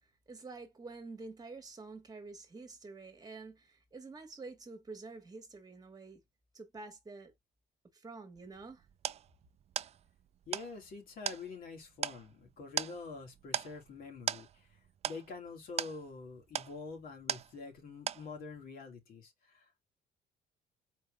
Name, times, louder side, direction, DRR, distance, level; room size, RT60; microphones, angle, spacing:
voice 1, 0.3-6.2 6.5-7.3 7.9-8.8, right 3 dB, 20° right, 1.6 m, -48 dB
sound 1, 8.4-17.8 18.1-18.6, right 10 dB, 40° right, 0.3 m, -40 dB
voice 2, 10.5-19.8, left 4 dB, 60° left, 2.5 m, -46 dB
4.4 x 3.4 x 3.4 m
cardioid pair, 110°, 17 cm